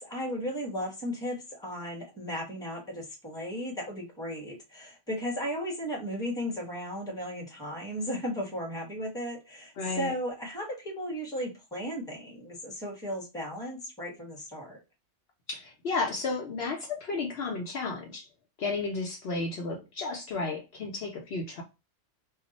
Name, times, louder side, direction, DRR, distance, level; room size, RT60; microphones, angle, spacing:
voice 1, 0.0-14.8, equal, 5° left, 0.9 m, -35 dB
voice 2, 9.8-10.1 15.5-18.3 18.6-21.6, left 3 dB, 65° left, 0.8 m, -33 dB
2.4 x 2.0 x 3.9 m
omnidirectional pair, 1.2 m